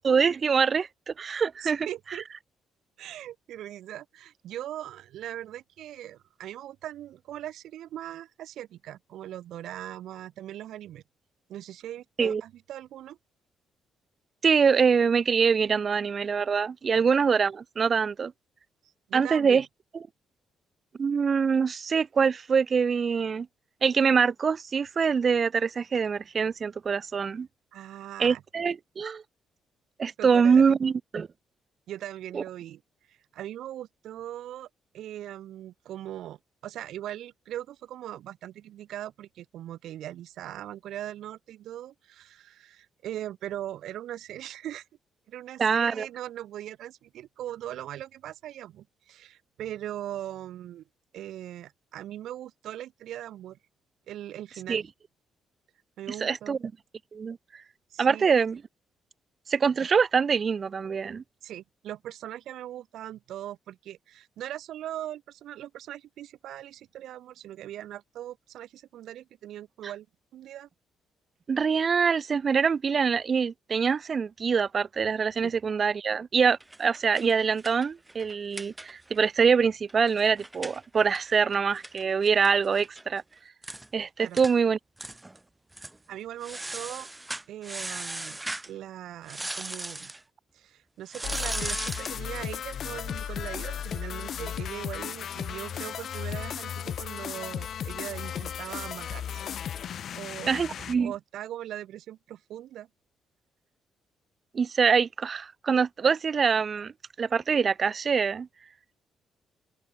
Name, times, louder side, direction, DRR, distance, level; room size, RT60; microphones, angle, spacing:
voice 1, 0.0-1.9 12.2-12.4 14.4-18.3 19.1-19.6 21.0-23.5 23.8-27.5 28.2-29.2 30.0-31.3 32.3-32.4 45.6-46.1 54.7-54.8 56.1-56.7 57.1-57.4 58.0-58.6 59.5-61.2 71.5-83.2 83.9-84.8 100.5-101.1 104.5-106.9 107.2-108.5, right 6 dB, 45° right, 0.8 m, -24 dB
voice 2, 1.6-2.3 3.0-11.0 11.5-13.2 16.9-17.0 18.8-19.6 27.7-28.4 30.2-30.8 31.9-34.7 34.9-36.4 36.6-44.9 45.3-50.8 51.1-53.6 54.1-54.8 56.0-56.6 57.9-58.3 61.4-70.1 70.3-70.7 75.4-75.5 84.2-84.4 86.1-87.1 87.5-88.4 88.6-90.1 90.5-99.6 100.1-100.6 101.0-102.9, right 12 dB, 80° right, 1.3 m, -40 dB
sound 1, 76.6-79.2 79.5-79.6 79.9-83.0 83.3-83.4 83.6-83.9 84.4-84.5 85.0-85.4 85.7-86.0 86.4-88.7 89.3-90.2 91.1-92.2, right 2 dB, 15° right, 2.1 m, -37 dB
sound 2, 91.2-101.0, left 9 dB, 60° left, 1.8 m, -35 dB
open air
cardioid pair, 90°, 0 cm